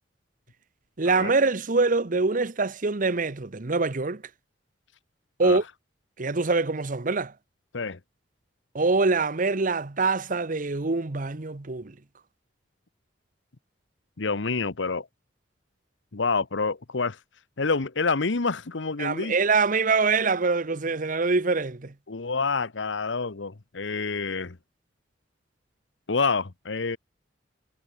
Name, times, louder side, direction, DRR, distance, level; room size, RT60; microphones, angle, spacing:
voice 1, 1.0-4.2 5.4-5.6 6.2-7.3 8.7-11.9 19.0-21.9, right 3 dB, 45° right, 1.0 m, -24 dB
voice 2, 14.2-15.1 16.1-17.2 17.6-19.4 22.1-24.6 26.1-27.0, left 4 dB, 90° left, 1.1 m, -27 dB
head